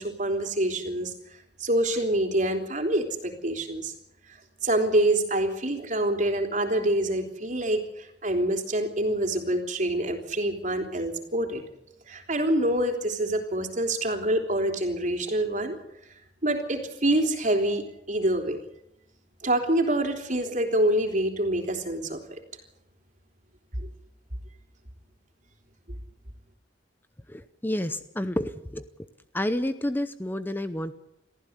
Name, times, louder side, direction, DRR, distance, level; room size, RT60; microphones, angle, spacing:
voice 1, 0.0-3.9 4.3-11.6 12.1-15.8 16.4-18.6 19.4-22.4 23.8-23.9, right 1 dB, 45° right, 4 dB, 3.5 m, -26 dB
voice 2, 27.3-28.8 29.3-30.9, left 1 dB, 10° left, 11 dB, 0.7 m, -29 dB
23.0 x 15.0 x 8.1 m, 0.83 s
head